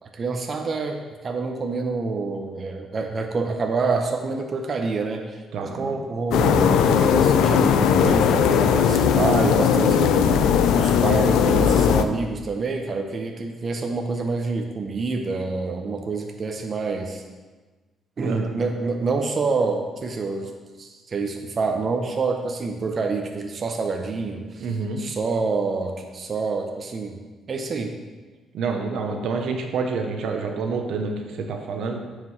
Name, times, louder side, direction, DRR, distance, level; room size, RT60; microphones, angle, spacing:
voice 1, 0.0-10.4 10.8-17.2 18.2-20.5 20.8-27.2 27.5-27.9, right 4 dB, 45° right, 3 dB, 0.7 m, -27 dB
voice 2, 5.5-5.9 18.2-18.7 24.6-25.0 28.5-32.0, right 4 dB, 75° right, 4 dB, 0.8 m, -28 dB
sound 1, 6.3-12.0, left 7 dB, 90° left, 0.4 m, -18 dB
9.2 x 4.9 x 3.2 m, 1.3 s
cardioid pair, 90°, 0 cm